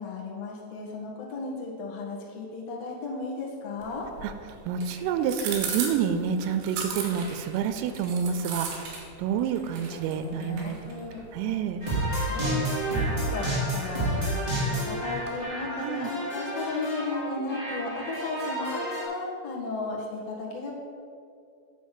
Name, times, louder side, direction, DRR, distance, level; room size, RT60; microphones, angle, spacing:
voice 1, 0.0-4.1 9.8-11.2 12.2-20.7, left 4 dB, 75° left, -4 dB, 1.5 m, -35 dB
sound 1, 3.8-15.4, right 5 dB, 75° right, 3.5 m, -40 dB
voice 2, 4.7-10.8 11.3-11.8 15.7-16.1, right 7 dB, 90° right, 10 dB, 3.2 m, -28 dB
sound 2, 4.8-5.7 6.2-8.1 8.5-9.0 9.3-11.2, right 2 dB, 50° right, 3.1 m, -49 dB
sound 3, 11.8-19.0, right 1 dB, 30° right, 0.7 m, -30 dB
8.5 x 5.9 x 7.4 m, 2.5 s
omnidirectional pair, 5.7 m